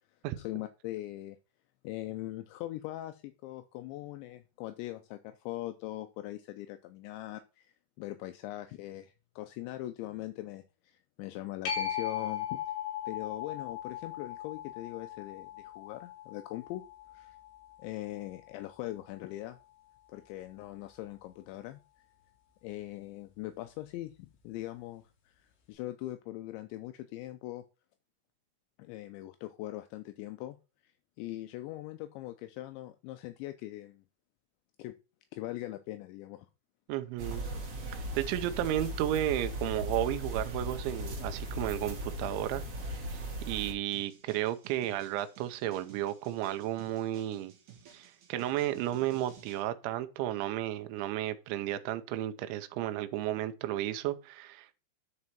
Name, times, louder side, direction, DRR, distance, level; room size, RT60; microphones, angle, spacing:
voice 1, 0.4-1.4 1.8-12.6 13.1-16.8 17.1-17.4 17.8-19.6 20.1-21.8 22.6-24.1 24.4-27.6 28.8-30.6 30.8-30.9 31.2-34.0 34.8-35.0 35.3-36.5, left 16 dB, 85° left, 2.6 m, -41 dB
sound 1, 11.7-18.8 24.4-24.5, left 9 dB, 65° left, 4.3 m, -39 dB
voice 2, 36.9-37.5 38.2-42.6 43.1-47.5 47.9-54.7, right 13 dB, 80° right, 2.9 m, -33 dB
sound 2, 37.2-43.7, equal, 45° right, 2.1 m, -38 dB
sound 3, 43.9-49.6, right 8 dB, 60° right, 2.2 m, -55 dB
9.6 x 4.9 x 4.2 m
omnidirectional pair, 5.8 m